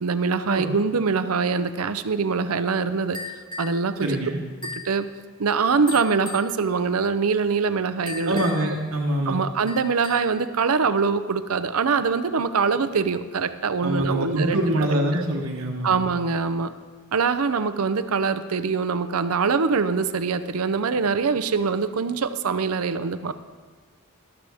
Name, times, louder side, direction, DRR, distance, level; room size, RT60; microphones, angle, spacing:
voice 1, 0.0-3.2 3.6-4.2 4.8-5.0 5.4-8.4 9.3-15.2 15.8-16.7 17.1-23.3, right 5 dB, 80° right, 12 dB, 0.6 m, -23 dB
sound 1, 3.1-3.8 4.6-4.9 5.9-6.5 8.1-8.8 9.7-10.4, left 3 dB, 20° left, 1.8 m, -37 dB
voice 2, 4.0-4.4 8.2-9.4 13.8-15.9, right 1 dB, 65° right, 1 dB, 1.2 m, -24 dB
13.0 x 12.0 x 3.5 m, 1.5 s
head